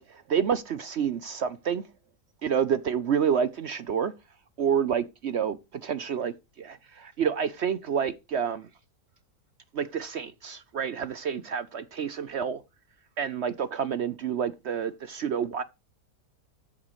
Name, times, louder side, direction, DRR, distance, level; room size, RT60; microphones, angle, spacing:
voice 1, 0.0-1.8 2.4-4.1 4.6-8.7 9.7-12.6 13.2-15.6, right 7 dB, 60° right, 0.7 m, -29 dB
13.5 x 8.2 x 3.1 m
omnidirectional pair, 1.8 m